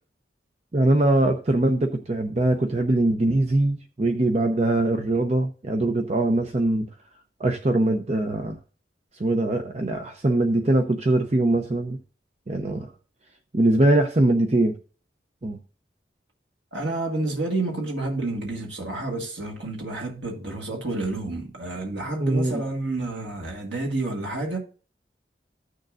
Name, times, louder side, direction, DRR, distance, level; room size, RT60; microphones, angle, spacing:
voice 1, 0.7-6.9 7.4-8.6 9.2-12.0 12.5-12.9 13.5-14.7 15.4-15.6 22.2-22.6, right 2 dB, 35° right, 0.6 m, -22 dB
voice 2, 16.7-24.6, right 2 dB, 85° right, 1.7 m, -29 dB
14.5 x 6.5 x 2.5 m
head